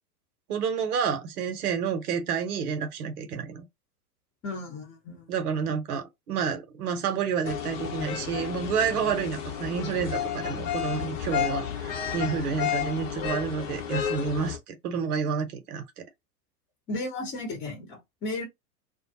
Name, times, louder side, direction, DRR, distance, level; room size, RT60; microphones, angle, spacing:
voice 1, 0.5-3.7 5.3-16.1, right 6 dB, 65° right, 0.9 m, -29 dB
voice 2, 4.4-5.3 16.9-18.4, left 2 dB, 25° left, 1.0 m, -34 dB
sound 1, 7.4-14.6, left 9 dB, 50° left, 0.9 m, -32 dB
2.4 x 2.2 x 2.7 m
figure-of-eight pair, 95°, 49 cm